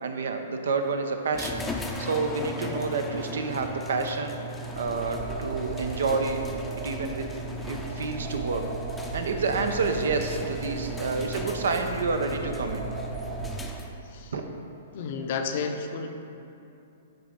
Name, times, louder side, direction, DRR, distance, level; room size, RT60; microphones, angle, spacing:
voice 1, 0.0-4.4 4.7-6.4 6.8-7.3 7.6-8.7 9.1-12.8 14.3-14.4, right 4 dB, 75° right, 6 dB, 0.6 m, -29 dB
sound 1, 1.3-14.1, equal, 10° left, 0.5 m, -37 dB
sound 2, 4.5-13.6, right 3 dB, 55° right, 1.5 m, -37 dB
voice 2, 14.9-16.1, left 5 dB, 55° left, 5 dB, 0.6 m, -31 dB
10.0 x 3.7 x 3.5 m, 2.7 s
hypercardioid pair, 120°, 0 cm